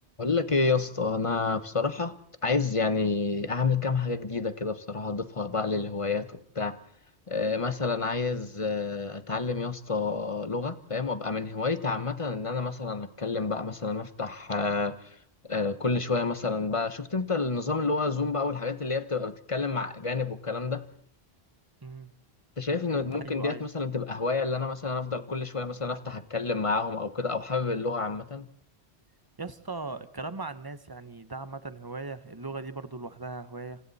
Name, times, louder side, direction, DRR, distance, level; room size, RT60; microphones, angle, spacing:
voice 1, 0.2-2.2 2.4-6.8 7.3-15.0 15.5-20.9 22.6-28.5, left 4 dB, 30° left, 1.2 m, -29 dB
voice 2, 23.2-23.6 29.4-33.8, right 3 dB, 20° right, 1.0 m, -38 dB
28.5 x 27.0 x 4.2 m
omnidirectional pair, 1.1 m